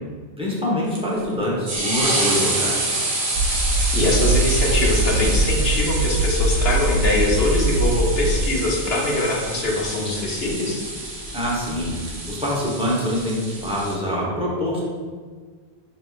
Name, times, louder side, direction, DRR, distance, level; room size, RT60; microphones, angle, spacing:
voice 1, 0.4-2.9 3.3-3.4 11.3-14.8, equal, 5° right, -6 dB, 0.8 m, -25 dB
sound 1, 0.9-14.0, right 2 dB, 40° right, 0.6 m, -27 dB
sound 2, 3.4-8.5, right 2 dB, 90° right, 0.9 m, -22 dB
voice 2, 3.9-10.8, left 2 dB, 70° left, -2 dB, 1.0 m, -22 dB
6.3 x 2.8 x 2.3 m, 1.5 s
omnidirectional pair, 1.1 m